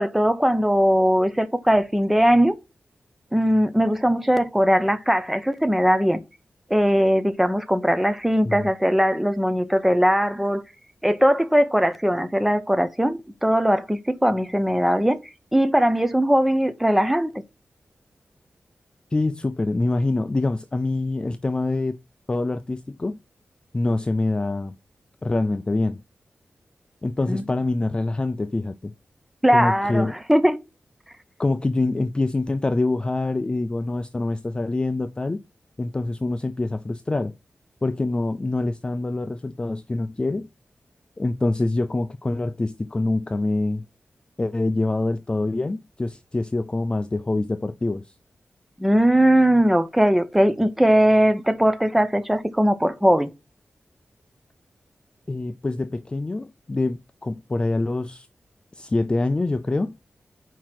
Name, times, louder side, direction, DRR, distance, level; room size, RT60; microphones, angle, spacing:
voice 1, 0.0-2.5 3.3-6.2 6.7-10.6 11.0-15.2 15.5-17.3 27.3-27.4 29.4-30.6 48.8-53.3, equal, 5° right, 0.8 m, -20 dB
voice 2, 19.1-22.0 22.3-23.2 23.7-24.7 25.2-26.0 27.0-28.9 29.5-30.1 31.4-35.4 35.8-37.3 37.8-40.5 41.2-43.9 44.4-48.1 55.3-58.3 58.7-59.9, left 2 dB, 25° left, 0.4 m, -25 dB
4.9 x 4.6 x 5.9 m
wide cardioid pair, 140°, 4 cm